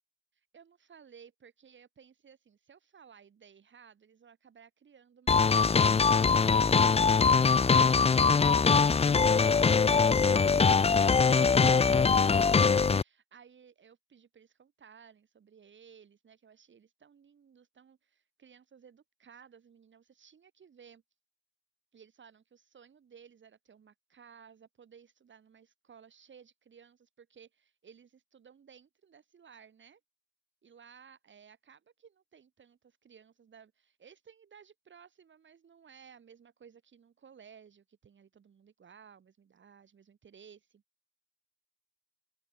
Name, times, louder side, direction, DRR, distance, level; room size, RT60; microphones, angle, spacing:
voice 1, 0.3-21.0 21.9-30.0 30.6-40.8, right 7 dB, 35° right, 7.4 m, -57 dB
sound 1, 5.3-13.0, left 5 dB, 15° left, 0.9 m, -22 dB
open air
hypercardioid pair, 80°, 34 cm